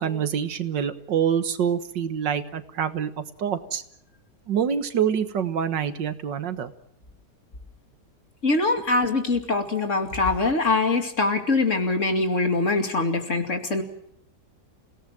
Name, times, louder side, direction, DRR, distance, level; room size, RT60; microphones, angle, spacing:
voice 1, 0.0-3.8 4.5-6.7, right 8 dB, 85° right, 11 dB, 2.0 m, -26 dB
voice 2, 8.4-13.8, left 3 dB, 45° left, 6 dB, 2.8 m, -23 dB
28.0 x 18.0 x 7.6 m, 0.70 s
omnidirectional pair, 1.9 m